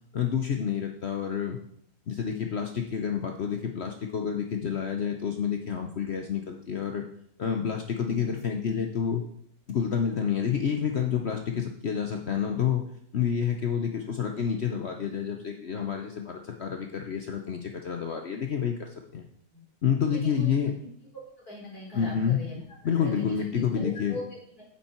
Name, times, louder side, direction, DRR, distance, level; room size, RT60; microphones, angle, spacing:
voice 1, 0.1-1.6 2.1-7.0 7.4-9.2 9.7-12.8 13.1-19.2 19.8-20.7 21.9-22.4 22.8-24.2, left 7 dB, 55° left, 3 dB, 1.0 m, -29 dB
voice 2, 20.1-20.5 20.8-20.9 21.4-22.6 23.0-24.6, left 2 dB, 85° left, -4 dB, 5.1 m, -40 dB
9.1 x 8.5 x 4.5 m, 0.66 s
omnidirectional pair, 1.6 m